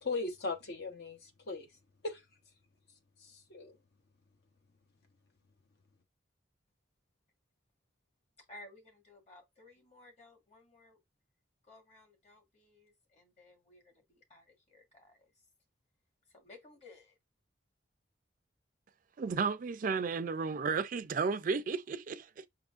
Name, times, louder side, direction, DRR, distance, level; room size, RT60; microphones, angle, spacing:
voice 1, 0.0-1.7 2.0-2.2 3.2-3.8, left 3 dB, 60° left, 0.8 m, -38 dB
voice 2, 8.5-11.0 11.6-15.3 16.3-17.2, left 2 dB, 35° left, 1.5 m, -57 dB
voice 3, 19.2-22.5, right 5 dB, 45° right, 0.4 m, -33 dB
5.7 x 3.6 x 2.4 m
head